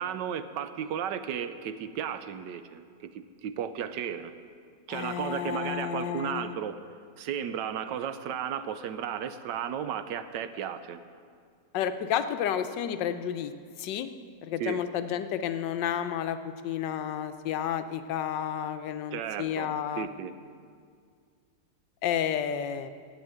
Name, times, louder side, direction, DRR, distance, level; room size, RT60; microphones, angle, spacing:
voice 1, 0.0-4.3 4.9-6.8 7.2-11.0 14.6-14.8 19.1-20.3, right 8 dB, 85° right, 11 dB, 1.3 m, -34 dB
voice 2, 4.9-6.6 11.7-13.5 13.8-14.1 14.4-16.4 16.6-20.1 22.0-22.9, left 9 dB, 85° left, 10 dB, 1.3 m, -31 dB
11.5 x 8.0 x 8.9 m, 2.1 s
omnidirectional pair, 1.9 m